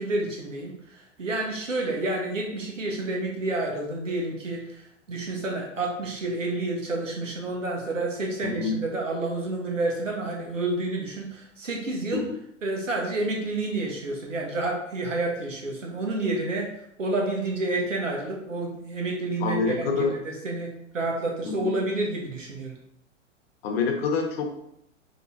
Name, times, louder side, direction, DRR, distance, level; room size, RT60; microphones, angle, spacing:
voice 1, 0.0-4.8 5.1-12.2 12.6-16.7 17.0-22.8, right 2 dB, 85° right, 0 dB, 1.3 m, -29 dB
voice 2, 19.4-20.1 21.4-21.7 23.6-24.6, left 4 dB, 55° left, 3 dB, 1.0 m, -26 dB
5.2 x 3.1 x 2.7 m, 0.74 s
hypercardioid pair, 110°, 37 cm